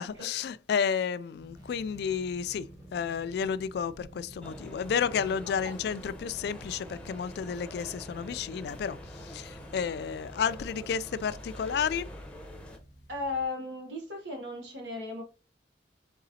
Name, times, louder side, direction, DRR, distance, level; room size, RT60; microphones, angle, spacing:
voice 1, 0.0-12.1, left 7 dB, 60° left, 0.3 m, -31 dB
sound 1, 1.4-13.4, right 1 dB, 20° right, 1.3 m, -51 dB
sound 2, 4.4-12.8, left 1 dB, 5° left, 0.7 m, -46 dB
voice 2, 13.1-15.2, left 3 dB, 75° right, 1.1 m, -36 dB
4.0 x 3.8 x 2.7 m
head